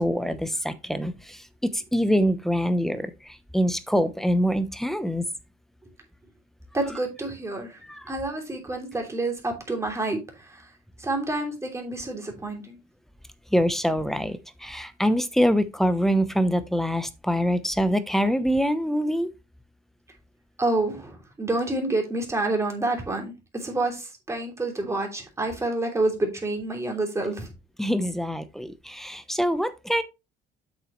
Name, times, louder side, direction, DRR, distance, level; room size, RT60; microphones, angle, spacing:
voice 1, 0.0-5.3 7.8-8.0 13.5-19.3 27.8-30.0, equal, ahead, 0.8 m, -25 dB
voice 2, 6.7-7.8 8.1-10.6 11.0-12.8 20.6-27.5, right 2 dB, 15° right, 3.0 m, -28 dB
8.2 x 6.3 x 3.1 m
cardioid pair, 110°, 17 cm